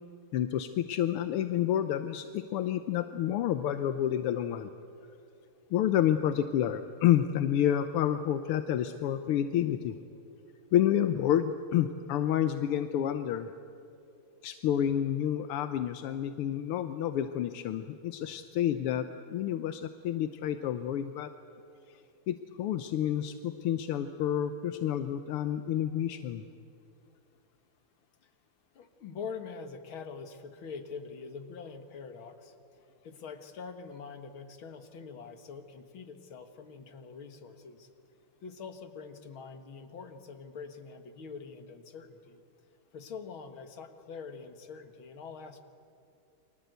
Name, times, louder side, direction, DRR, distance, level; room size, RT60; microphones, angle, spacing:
voice 1, 0.3-4.7 5.7-10.0 10.7-13.5 14.4-21.3 22.3-26.4, left 10 dB, 85° left, 9 dB, 1.7 m, -29 dB
voice 2, 28.7-32.5 33.0-37.9 38.4-42.4 42.9-45.6, left 5 dB, 70° left, 7 dB, 2.5 m, -44 dB
29.5 x 24.5 x 8.1 m, 2.6 s
omnidirectional pair, 2.4 m